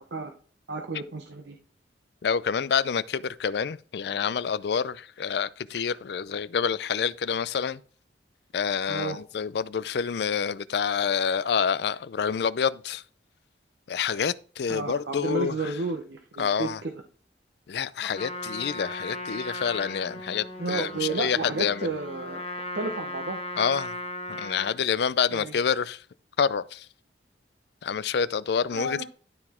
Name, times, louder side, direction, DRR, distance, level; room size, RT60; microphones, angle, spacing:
voice 1, 0.7-1.6 8.9-9.2 14.7-16.9 20.6-22.4 22.7-23.4 25.3-25.6 28.7-29.0, right 3 dB, 75° right, 0.8 m, -32 dB
voice 2, 2.2-7.8 8.5-13.0 13.9-15.5 16.4-16.8 17.7-21.9 23.6-23.9 24.4-26.0 26.4-26.8 27.8-29.0, left 6 dB, 65° left, 0.4 m, -27 dB
Trumpet, 18.0-24.8, left 1 dB, 35° left, 1.2 m, -37 dB
12.0 x 4.1 x 4.3 m
head